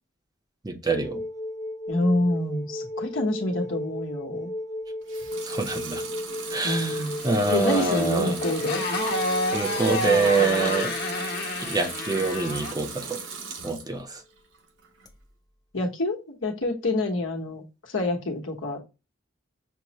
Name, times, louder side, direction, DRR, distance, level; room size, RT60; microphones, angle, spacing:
voice 1, 0.6-1.2 5.4-6.0 6.5-7.0 7.2-8.4 9.5-10.9 11.6-13.2 13.6-14.2, right 3 dB, 20° right, 0.6 m, -25 dB
sound 1, 0.8-13.3 15.0-15.1, left 1 dB, 20° left, 0.6 m, -35 dB
voice 2, 1.9-4.5 6.6-7.2 7.5-8.8 15.7-18.8, left 1 dB, 80° left, 1.1 m, -27 dB
Water tap faucet / Sink (filling or washing) / Liquid, 5.0-14.0 14.4-15.1, right 5 dB, 70° right, 0.8 m, -38 dB
Motorcycle, 6.8-12.8, left 2 dB, 55° left, 1.1 m, -30 dB
6.2 x 2.1 x 2.8 m
head